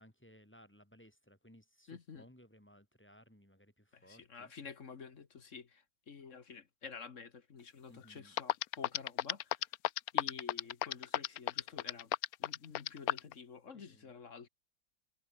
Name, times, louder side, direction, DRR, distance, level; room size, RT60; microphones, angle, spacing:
voice 1, 0.0-4.5 7.9-8.4 13.7-14.1, equal, 5° left, 4.2 m, -61 dB
voice 2, 1.9-2.2 3.9-9.6 10.1-12.1 12.4-14.5, left 6 dB, 45° left, 1.6 m, -50 dB
sound 1, 8.0-8.1 8.4-13.3, left 14 dB, 70° left, 0.9 m, -32 dB
omnidirectional pair, 2.0 m